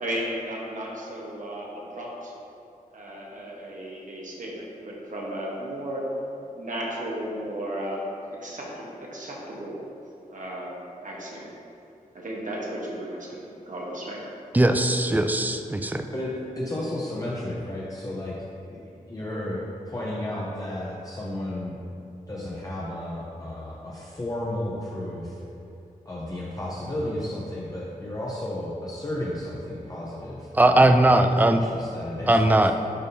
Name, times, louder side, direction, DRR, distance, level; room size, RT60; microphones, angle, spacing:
voice 1, 0.0-2.3 2.9-6.1 6.6-8.1 8.4-9.8 10.3-10.7 11.0-11.5 12.1-14.2, right 1 dB, 65° right, -3 dB, 1.2 m, -34 dB
voice 2, 14.5-16.0 30.5-31.6 32.3-32.7, right 1 dB, 10° right, 6 dB, 0.3 m, -19 dB
voice 3, 16.1-18.4 18.7-18.8 19.1-21.8 22.3-25.4 26.1-32.7, left 1 dB, 25° left, -6 dB, 0.7 m, -33 dB
10.5 x 3.6 x 2.7 m, 2.7 s
wide cardioid pair, 90°, 15 cm